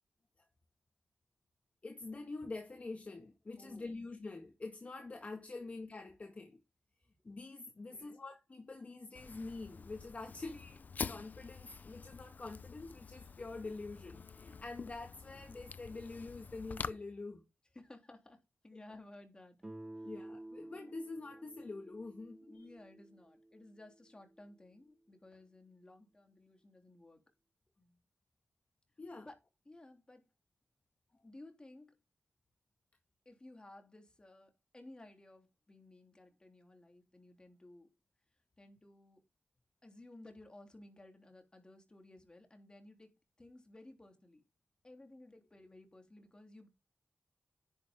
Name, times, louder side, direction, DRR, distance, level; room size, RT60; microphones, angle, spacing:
voice 1, 1.8-6.6 7.2-17.4 20.0-22.5 29.0-29.3, left 3 dB, 40° left, 1.8 m, -46 dB
voice 2, 3.6-4.0 7.9-8.2 17.7-19.6 20.0-20.1 22.5-27.2 27.8-28.0 29.2-29.4 29.6-30.3 31.1-32.0 33.2-37.9 38.6-39.2 39.8-43.1 43.4-44.4 44.8-46.7, left 2 dB, 25° left, 3.4 m, -57 dB
Fire, 9.1-16.9, left 5 dB, 55° left, 0.6 m, -47 dB
Guitar, 19.6-24.4, right 1 dB, 20° right, 1.3 m, -52 dB
10.5 x 7.0 x 3.7 m
wide cardioid pair, 85°, 3 cm